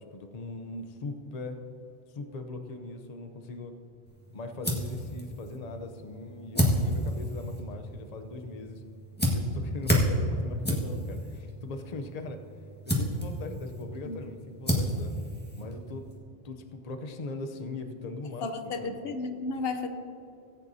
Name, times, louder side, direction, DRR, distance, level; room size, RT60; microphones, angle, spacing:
voice 1, 0.0-1.6 2.1-3.7 4.3-8.8 9.3-12.4 12.9-15.1 15.5-16.1 16.4-19.0, left 3 dB, 45° left, 6 dB, 0.8 m, -40 dB
sound 1, 4.1-16.2, equal, 10° left, 1.5 m, -31 dB
voice 2, 18.4-19.9, left 3 dB, 75° left, 6 dB, 1.0 m, -33 dB
18.0 x 9.0 x 2.7 m, 2.7 s
omnidirectional pair, 1.0 m